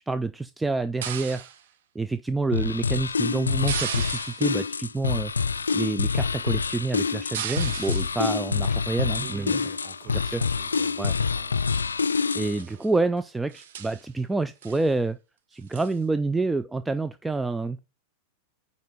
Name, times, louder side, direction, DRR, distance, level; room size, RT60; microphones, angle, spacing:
voice 1, 0.1-1.5 1.9-9.5 10.3-10.4 11.0-11.1 12.3-15.2 15.5-17.8, right 3 dB, 10° right, 0.4 m, -28 dB
sound 1, 1.0-1.6 3.7-4.7 7.3-8.2 9.3-9.6 10.2-10.8 11.1-11.2 11.6-11.9 12.5-12.9 13.2-13.3 13.5-14.0 14.6-14.9 15.7-16.0, right 9 dB, 55° right, 1.0 m, -36 dB
sound 2, 2.5-12.6, left 5 dB, 75° left, 0.3 m, -26 dB
sound 3, 8.0-13.0, left 2 dB, 85° right, 2.4 m, -56 dB
voice 2, 9.1-11.6, right 7 dB, 30° right, 1.2 m, -46 dB
9.3 x 4.1 x 5.3 m
figure-of-eight pair, 90°, 0 cm